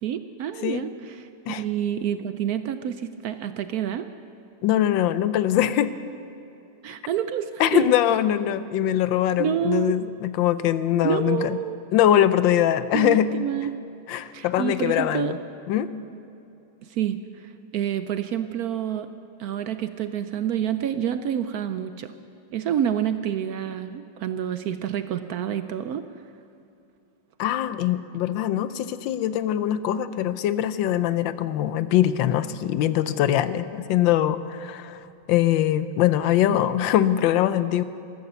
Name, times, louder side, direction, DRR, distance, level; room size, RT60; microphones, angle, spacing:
voice 1, 0.0-1.3 1.6-4.1 6.8-7.9 9.4-9.9 11.0-11.8 12.9-13.7 14.3-15.4 16.8-19.1 19.4-22.1 22.5-26.2 36.5-36.6, right 9 dB, 70° right, 10 dB, 0.9 m, -28 dB
voice 2, 4.6-5.9 7.6-11.6 11.9-13.3 14.1-15.4 15.7-15.9 27.4-35.0 35.3-37.8, left 11 dB, 90° left, 14 dB, 1.4 m, -22 dB
14.5 x 13.5 x 6.8 m, 2.8 s
omnidirectional pair, 2.0 m